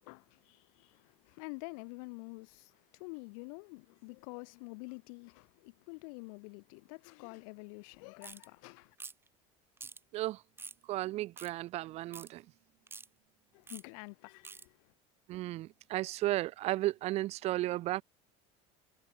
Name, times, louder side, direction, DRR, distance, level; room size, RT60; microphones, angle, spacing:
voice 1, 0.0-9.0 13.5-14.9, left 33 dB, 75° left, 1.0 m, -48 dB
sound 1, 8.2-8.5 9.0-9.3 9.8-10.0 10.6-10.8 11.4-11.5 12.1-12.3 12.9-13.1 13.7-13.8 14.4-14.6, right 4 dB, 15° right, 0.9 m, -47 dB
voice 2, 10.9-12.4 15.3-18.0, right 16 dB, 40° right, 0.4 m, -34 dB
cardioid pair, 150°, 18 cm